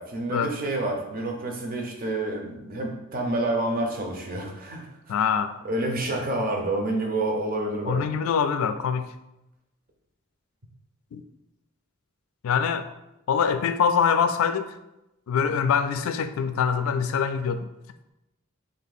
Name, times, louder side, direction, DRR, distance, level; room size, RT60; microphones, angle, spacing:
voice 1, 0.0-4.9 5.6-8.0, right 2 dB, 40° right, 0.7 m, -28 dB
voice 2, 5.1-5.5 7.9-9.1 11.1-11.2 12.4-12.9 13.3-14.7 15.3-17.7, left 6 dB, 70° left, 0.3 m, -24 dB
3.6 x 2.7 x 4.0 m
head